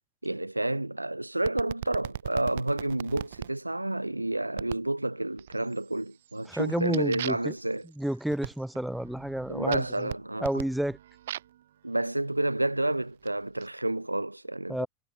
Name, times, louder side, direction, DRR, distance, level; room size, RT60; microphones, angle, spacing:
voice 1, 0.2-7.8 9.5-10.6 11.8-14.9, right 1 dB, 85° right, 1.6 m, -30 dB
sound 1, 1.4-3.5 4.6-4.9 5.4-5.9 6.2-11.6 12.4-13.7, right 12 dB, 60° right, 6.9 m, -40 dB
voice 2, 6.5-7.5 8.0-10.1 10.4-11.0 14.7-14.9, right 1 dB, ahead, 2.0 m, -30 dB
figure-of-eight pair, 90°, 0 cm